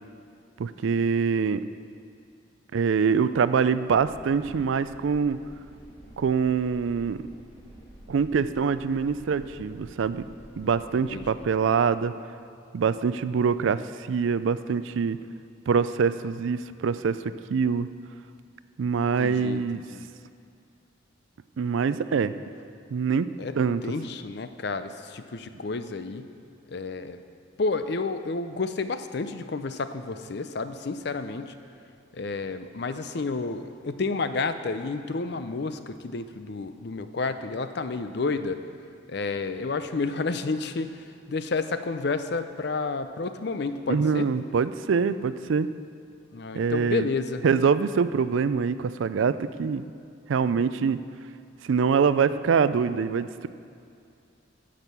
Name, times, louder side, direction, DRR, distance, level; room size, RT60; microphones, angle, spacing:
voice 1, 0.6-1.6 2.7-5.4 6.2-7.2 8.1-10.2 10.6-12.1 12.7-13.8 14.1-15.2 15.7-17.9 18.8-19.8 21.6-22.3 22.9-23.3 23.6-23.8 43.9-45.7 46.5-47.1 47.4-49.8 50.3-51.0 51.6-53.5, right 6 dB, 75° right, 14 dB, 0.4 m, -24 dB
sound 1, 3.9-11.5, equal, 20° left, 2.3 m, -49 dB
voice 2, 11.1-11.5 19.2-20.1 23.4-23.5 23.8-26.3 26.7-27.2 27.6-31.5 32.1-38.6 39.1-44.3 46.3-47.4, left 3 dB, 55° left, 10 dB, 0.5 m, -30 dB
10.5 x 7.5 x 6.8 m, 2.4 s
head